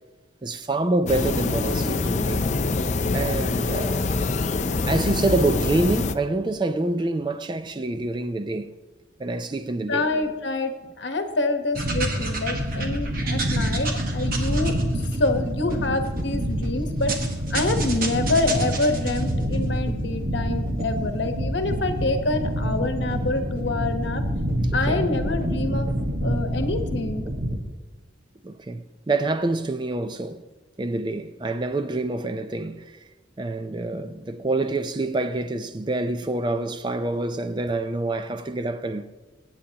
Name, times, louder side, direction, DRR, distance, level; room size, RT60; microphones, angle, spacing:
voice 1, 0.4-2.4 3.1-4.0 4.9-8.7 9.2-10.1 24.7-25.2 28.4-30.4 30.8-33.0 33.4-39.1, right 2 dB, 25° right, 0.4 m, -26 dB
sound 1, 1.0-6.1, left 3 dB, 35° left, 0.5 m, -25 dB
voice 2, 9.9-17.1 17.5-24.2 24.7-25.9 26.2-27.3, left 2 dB, 65° left, 1.1 m, -26 dB
sound 2, 11.8-27.6, right 1 dB, 45° right, 1.3 m, -26 dB
22.0 x 8.8 x 2.9 m
head